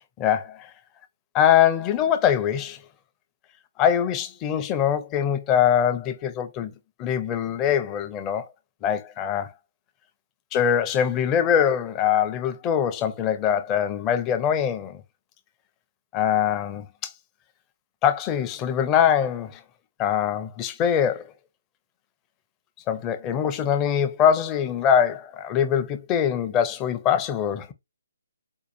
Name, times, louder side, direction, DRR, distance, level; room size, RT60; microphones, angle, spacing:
voice 1, 0.2-0.7 1.3-2.8 3.8-6.7 7.0-8.5 8.8-9.5 10.5-15.0 16.1-17.1 18.0-19.6 20.0-21.2 22.9-27.7, left 9 dB, 20° left, 0.5 m, -23 dB
4.5 x 2.4 x 2.5 m
figure-of-eight pair, 145°, 0 cm